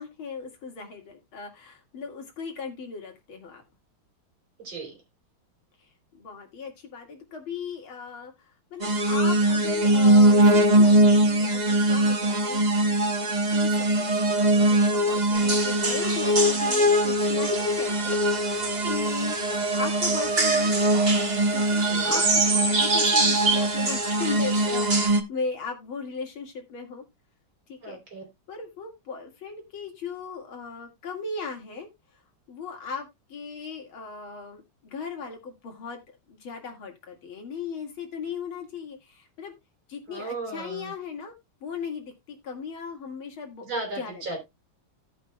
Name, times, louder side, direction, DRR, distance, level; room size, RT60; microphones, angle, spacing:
voice 1, 0.0-3.6 6.1-19.4 19.7-20.7 21.5-27.0 27.7-28.0 28.5-31.9 32.5-36.0 36.3-39.5 39.9-41.3 41.6-43.7 44.0-44.2, left 5 dB, 80° left, 3 dB, 2.8 m, -37 dB
voice 2, 4.6-4.9 18.8-18.9 21.9-22.2 27.8-28.2 40.1-40.9 43.6-44.4, right 3 dB, 70° right, 2 dB, 4.4 m, -35 dB
sound 1, 8.8-25.2, right 1 dB, 50° right, 0.5 m, -22 dB
sound 2, 15.3-25.1, right 3 dB, 30° right, 1.8 m, -28 dB
17.0 x 5.7 x 2.2 m, 0.22 s
omnidirectional pair, 2.2 m